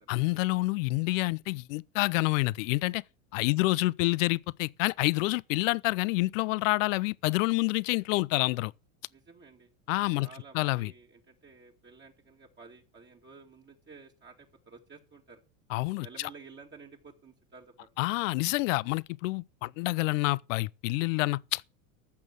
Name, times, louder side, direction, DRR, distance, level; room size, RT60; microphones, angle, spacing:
voice 1, 0.1-3.0 3.3-8.7 9.9-10.3 10.5-10.9 15.7-16.3 18.0-21.7, left 22 dB, 70° left, 0.7 m, -28 dB
voice 2, 9.1-9.7 10.1-15.4 16.0-17.9, right 4 dB, 25° right, 2.3 m, -52 dB
14.5 x 6.2 x 7.4 m
hypercardioid pair, 95°, 40 cm